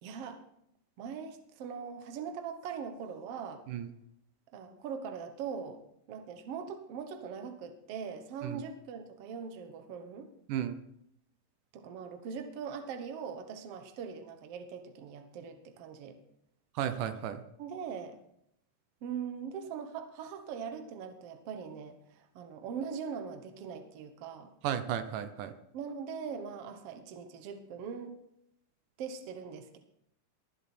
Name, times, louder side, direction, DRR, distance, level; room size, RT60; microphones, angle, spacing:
voice 1, 0.0-0.4 1.0-3.6 4.5-5.8 6.1-10.3 11.7-16.2 17.6-18.2 19.0-24.5 25.7-28.2 29.0-29.8, right 6 dB, 60° right, 7 dB, 1.9 m, -41 dB
voice 2, 16.8-17.4 24.6-25.5, right 10 dB, 80° right, 10 dB, 2.3 m, -33 dB
20.5 x 7.7 x 4.4 m, 0.76 s
omnidirectional pair, 3.7 m